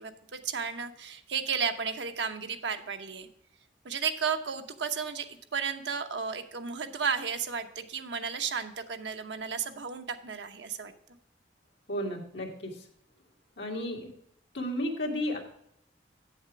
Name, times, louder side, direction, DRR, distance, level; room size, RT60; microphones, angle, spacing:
voice 1, 0.0-3.3 3.8-10.9, right 6 dB, 85° right, 7 dB, 0.9 m, -33 dB
voice 2, 11.9-12.7 13.6-14.0 14.5-15.4, left 1 dB, 80° left, 0 dB, 2.1 m, -32 dB
8.3 x 7.2 x 4.6 m, 0.73 s
head